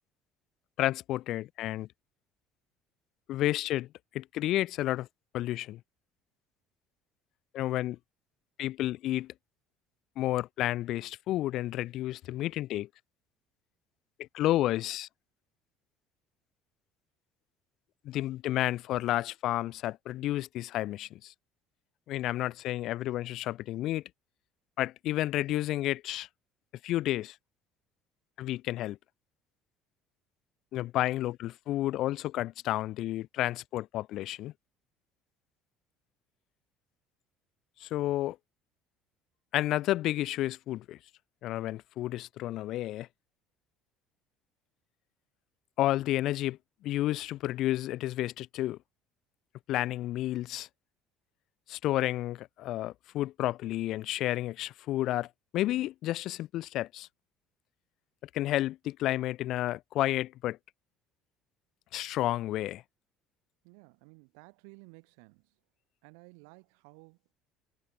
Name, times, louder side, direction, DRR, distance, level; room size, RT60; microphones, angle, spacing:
voice 1, 0.8-1.9 3.3-3.9 4.1-5.1 5.3-5.8 7.5-8.0 8.6-9.3 10.2-12.9 14.3-15.1 18.1-21.3 22.1-24.0 24.8-26.3 26.8-27.4 28.4-29.0 30.7-34.5 37.8-38.4 39.5-41.0 41.4-43.1 45.8-46.6 46.8-48.8 49.7-50.7 51.7-55.3 55.5-57.1 58.3-60.6 61.9-62.8, left 15 dB, 65° left, 0.4 m, -31 dB
voice 2, 63.6-65.6 66.0-67.3, right 40 dB or more, 85° right, 2.5 m, -55 dB
supercardioid pair, 90°, 0 cm